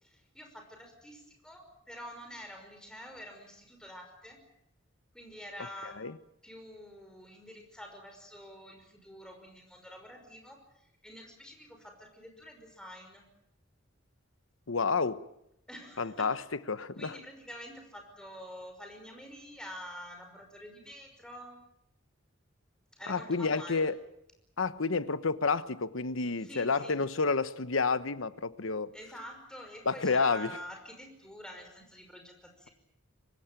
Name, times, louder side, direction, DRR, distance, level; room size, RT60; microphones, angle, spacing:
voice 1, 0.0-4.4 5.1-6.1 6.4-13.2 15.7-16.4 17.0-21.6 22.9-23.9 26.4-26.9 28.9-32.7, equal, 5° left, 5.5 m, -47 dB
voice 2, 14.7-15.2 16.0-16.4 16.7-17.1 23.1-23.9 24.6-28.9 29.9-30.6, left 4 dB, 85° left, 1.1 m, -30 dB
25.0 x 20.5 x 9.1 m
head